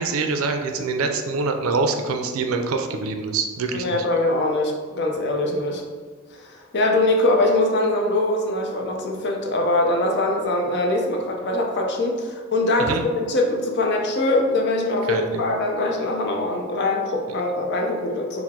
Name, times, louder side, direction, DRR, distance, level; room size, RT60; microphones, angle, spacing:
voice 1, 0.0-4.0 12.9-13.0 15.1-15.4, right 4 dB, 75° right, 5 dB, 0.4 m, -25 dB
voice 2, 3.7-5.8 6.3-18.4, left 2 dB, 55° left, 1 dB, 0.6 m, -22 dB
4.5 x 2.0 x 3.6 m, 1.5 s
head